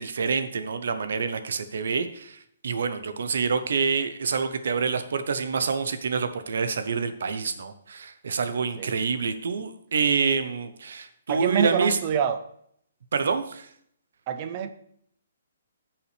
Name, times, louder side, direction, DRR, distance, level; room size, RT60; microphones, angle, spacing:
voice 1, 0.0-12.0 13.1-13.7, right 5 dB, 55° right, 10 dB, 0.8 m, -27 dB
voice 2, 11.3-12.4 14.3-14.7, right 7 dB, 20° right, 10 dB, 0.5 m, -26 dB
14.5 x 5.8 x 3.3 m, 0.68 s
hypercardioid pair, 180°, 0 cm